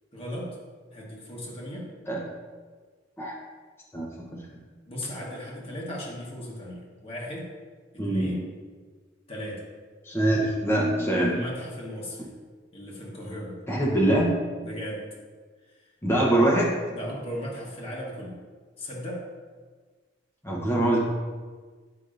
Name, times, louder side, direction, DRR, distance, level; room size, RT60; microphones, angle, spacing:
voice 1, 0.1-0.5 0.9-1.9 4.9-7.5 7.9-8.4 9.3-9.6 11.2-12.3 12.7-13.6 14.6-15.0 15.7-15.8 16.9-18.4 18.8-19.2, equal, 35° left, -4 dB, 1.2 m, -37 dB
voice 2, 3.9-4.4 8.0-8.3 10.0-11.4 13.7-14.3 16.0-16.8 20.4-21.0, right 1 dB, 15° left, -4 dB, 0.8 m, -23 dB
7.9 x 5.3 x 2.5 m, 1.5 s
head